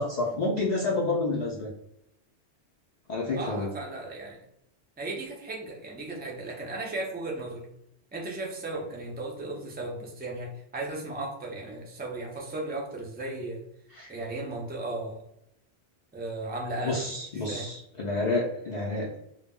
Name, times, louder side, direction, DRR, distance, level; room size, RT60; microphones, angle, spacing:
voice 1, 0.0-1.7 3.1-3.7 13.9-14.1 16.8-19.1, left 2 dB, 55° left, -3 dB, 0.4 m, -29 dB
voice 2, 3.4-4.4 5.0-7.7 8.1-13.6 14.1-15.2 16.1-17.7, right 2 dB, 15° right, -1 dB, 0.3 m, -36 dB
2.1 x 2.0 x 3.5 m, 0.80 s
omnidirectional pair, 1.2 m